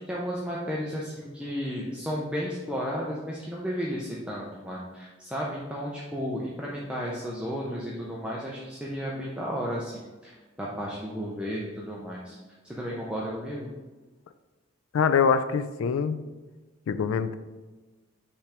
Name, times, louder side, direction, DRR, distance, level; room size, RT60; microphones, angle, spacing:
voice 1, 0.1-12.4 12.6-13.7, equal, 5° right, -5 dB, 0.6 m, -33 dB
voice 2, 14.9-16.2 16.9-17.3, left 6 dB, 80° left, 11 dB, 0.3 m, -24 dB
5.7 x 3.4 x 4.9 m, 1.3 s
head